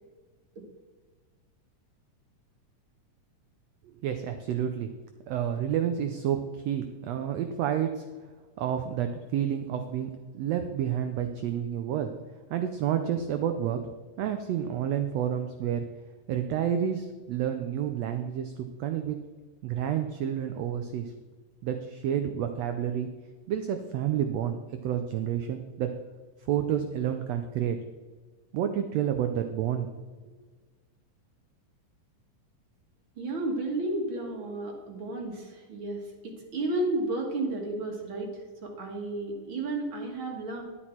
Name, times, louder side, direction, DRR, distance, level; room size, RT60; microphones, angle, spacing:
voice 1, 3.8-4.9 5.3-8.0 8.6-12.1 12.5-13.9 14.2-15.8 16.3-18.5 18.8-19.2 19.6-21.1 21.6-23.1 23.5-25.9 26.5-27.8 28.5-29.9, right 9 dB, 90° right, 7 dB, 1.4 m, -29 dB
voice 2, 33.2-40.6, right 2 dB, 45° right, 1 dB, 2.0 m, -32 dB
12.0 x 8.4 x 4.4 m, 1.4 s
omnidirectional pair, 3.8 m